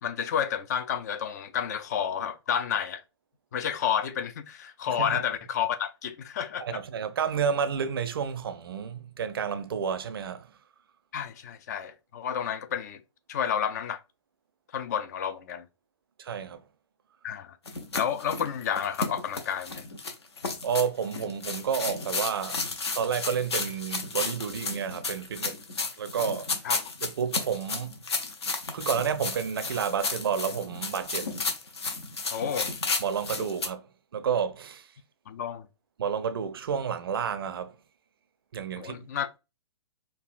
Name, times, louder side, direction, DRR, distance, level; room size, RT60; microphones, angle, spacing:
voice 1, 0.0-3.0 3.5-6.8 11.1-13.0 13.3-14.0 14.7-15.6 17.2-17.6 17.9-19.8 26.6-26.8 32.3-32.7 35.3-35.7 38.8-39.4, left 8 dB, 35° left, 0.4 m, -30 dB
voice 2, 4.9-5.2 6.6-10.5 16.2-16.6 20.6-22.6 22.9-25.6 26.0-26.5 27.0-28.0 28.7-31.3 33.0-34.9 36.0-37.8 38.5-38.9, right 7 dB, 55° right, 0.5 m, -30 dB
sound 1, 17.7-33.7, left 4 dB, 65° left, 0.8 m, -33 dB
4.7 x 2.3 x 2.4 m
figure-of-eight pair, 120°, 15 cm